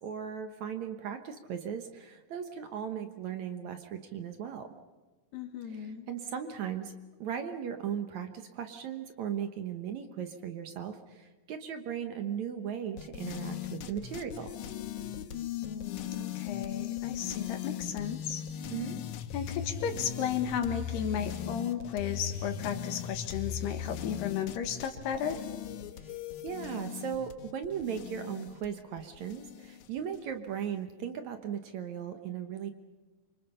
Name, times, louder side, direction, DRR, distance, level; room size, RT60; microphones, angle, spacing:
voice 1, 0.0-4.7 5.6-14.5 18.7-19.0 25.9-32.7, right 8 dB, 65° right, 8 dB, 2.0 m, -37 dB
voice 2, 5.3-6.1 15.6-18.4 19.3-25.4, left 8 dB, 85° left, 6 dB, 3.6 m, -34 dB
sound 1, 13.0-30.2, left 9 dB, 70° left, 1.9 m, -39 dB
27.5 x 24.5 x 5.7 m, 1.2 s
omnidirectional pair, 4.5 m